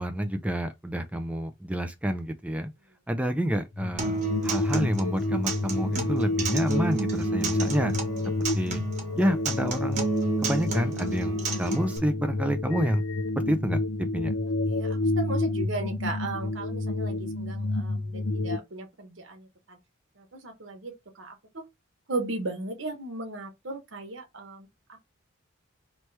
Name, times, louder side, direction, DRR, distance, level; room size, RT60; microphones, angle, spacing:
voice 1, 0.0-2.7 3.1-7.9 8.5-8.8 9.2-10.1 10.4-13.0 13.5-13.8 14.1-14.3, equal, 5° right, 0.4 m, -28 dB
sound 1, 3.7-18.6, left 2 dB, 85° left, 0.6 m, -29 dB
Acoustic guitar, 4.0-12.0, right 3 dB, 35° right, 1.1 m, -32 dB
voice 2, 14.7-19.8 20.2-21.7 22.1-25.0, right 2 dB, 70° right, 1.0 m, -36 dB
3.2 x 3.0 x 4.4 m
head